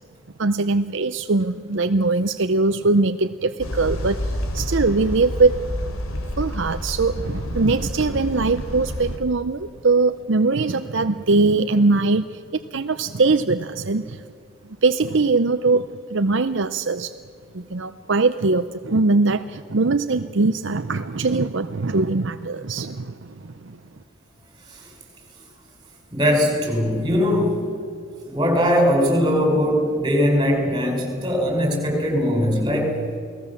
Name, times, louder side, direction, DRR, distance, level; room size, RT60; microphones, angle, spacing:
voice 1, 0.4-5.7 6.4-14.2 14.8-17.1 17.5-23.8, right 3 dB, 60° right, 10 dB, 0.6 m, -21 dB
sound 1, 3.6-9.2, left 1 dB, 85° left, 3.1 m, -29 dB
voice 2, 26.1-27.6 28.2-33.0, equal, 20° right, 2 dB, 5.8 m, -20 dB
29.0 x 19.0 x 7.2 m, 2.3 s
head